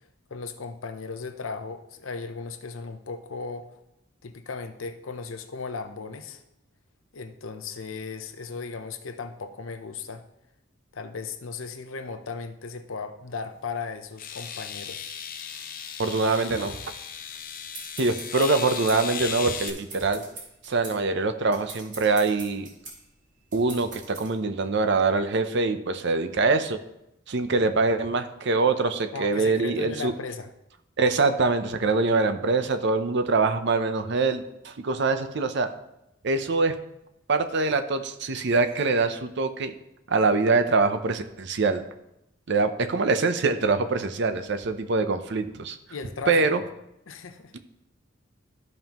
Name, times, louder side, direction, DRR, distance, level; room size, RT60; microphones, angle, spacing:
voice 1, 0.3-3.7 4.2-6.4 7.1-10.2 10.9-15.1 29.1-30.5 31.1-31.2 45.9-46.5 47.1-47.5, left 4 dB, 85° left, 7 dB, 0.8 m, -36 dB
sound 1, 13.3-13.4 14.2-19.7, left 7 dB, 45° left, 0.7 m, -36 dB
voice 2, 16.0-16.8 18.0-20.2 20.7-22.7 23.5-26.8 27.3-30.1 31.0-35.7 36.2-36.8 37.3-39.7 40.1-41.8 42.5-45.8 46.3-46.6 47.5-47.6, right 3 dB, 60° right, 9 dB, 0.6 m, -24 dB
sound 2, 17.3-24.3, right 3 dB, 40° right, 2.5 m, -43 dB
13.5 x 5.4 x 3.0 m, 0.84 s
head